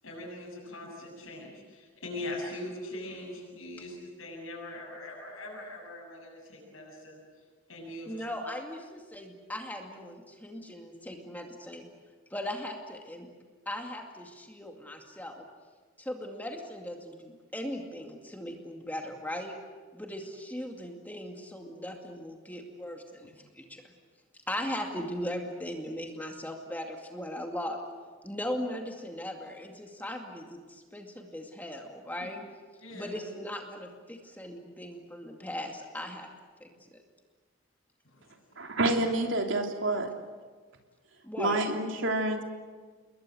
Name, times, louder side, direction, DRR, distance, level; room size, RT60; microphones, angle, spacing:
voice 1, 0.0-7.2 7.7-8.3 32.2-32.3 32.8-33.2 38.0-38.6, left 1 dB, 85° left, -4 dB, 7.5 m, -41 dB
voice 2, 8.1-11.9 12.3-13.3 13.7-15.5 16.0-19.5 19.9-23.9 24.5-27.8 28.2-32.4 32.9-36.3 36.6-37.0 41.2-41.6, left 1 dB, 10° left, 2 dB, 2.3 m, -38 dB
voice 3, 38.6-40.1 41.4-42.4, right 2 dB, 70° right, 3 dB, 3.3 m, -28 dB
29.0 x 21.5 x 7.8 m, 1.4 s
head